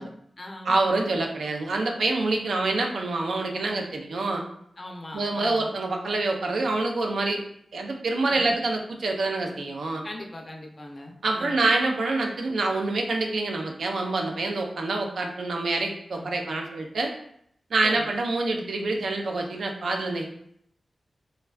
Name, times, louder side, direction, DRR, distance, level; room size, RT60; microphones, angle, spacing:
voice 1, 0.0-0.8 2.5-2.8 3.5-3.8 4.8-5.8 8.2-8.6 10.0-11.7 16.1-16.4 17.8-18.1, left 1 dB, 30° left, 2 dB, 0.4 m, -40 dB
voice 2, 0.6-4.4 5.1-7.4 7.7-10.0 11.2-17.1 17.7-20.3, right 2 dB, 85° right, 2 dB, 0.4 m, -26 dB
3.4 x 2.2 x 2.2 m, 0.69 s
wide cardioid pair, 125°, 0 cm